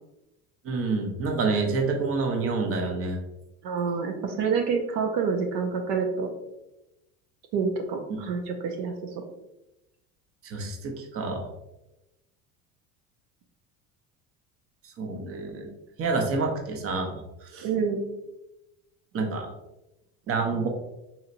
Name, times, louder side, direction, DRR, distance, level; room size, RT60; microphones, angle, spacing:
voice 1, 0.6-3.2 10.4-11.5 15.0-15.7 16.0-17.1 17.4-17.7 19.1-19.5 20.3-20.7, right 3 dB, 35° right, 2 dB, 0.7 m, -28 dB
voice 2, 3.6-6.3 7.5-9.2 17.6-18.0 20.5-20.6, right 5 dB, 75° right, 3 dB, 0.7 m, -28 dB
4.2 x 2.7 x 2.5 m, 0.94 s
supercardioid pair, 95°, 39 cm